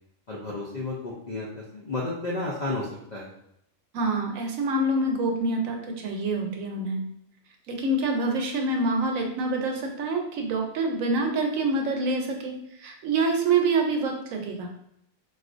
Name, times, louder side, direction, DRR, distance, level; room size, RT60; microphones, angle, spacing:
voice 1, 0.3-3.3, left 2 dB, 65° left, -4 dB, 0.4 m, -32 dB
voice 2, 3.9-7.0 7.7-14.7, right 2 dB, 80° right, 2 dB, 1.0 m, -26 dB
3.7 x 2.4 x 2.5 m, 0.76 s
omnidirectional pair, 1.4 m